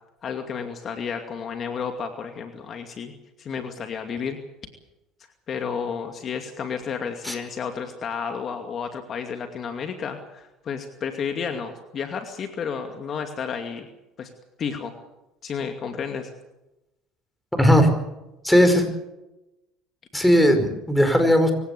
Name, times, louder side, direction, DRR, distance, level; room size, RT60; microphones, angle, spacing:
voice 1, 0.2-3.1 3.4-4.4 5.5-13.9 14.2-14.3 14.6-14.9 15.4-16.3, left 6 dB, 40° left, 5 dB, 2.5 m, -31 dB
voice 2, 17.5-17.9 18.4-18.8 20.1-21.5, equal, 5° left, 7 dB, 4.9 m, -17 dB
25.5 x 17.0 x 8.4 m, 0.97 s
supercardioid pair, 110°, 0 cm